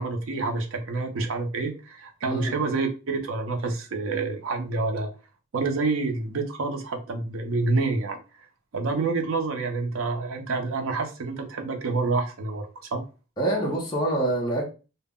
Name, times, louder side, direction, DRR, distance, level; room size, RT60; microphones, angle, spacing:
voice 1, 0.0-5.1 5.5-8.2 8.7-13.0, right 3 dB, 80° right, 0.5 m, -28 dB
voice 2, 13.4-14.6, right 1 dB, 20° left, 0.6 m, -25 dB
2.0 x 2.0 x 3.5 m
head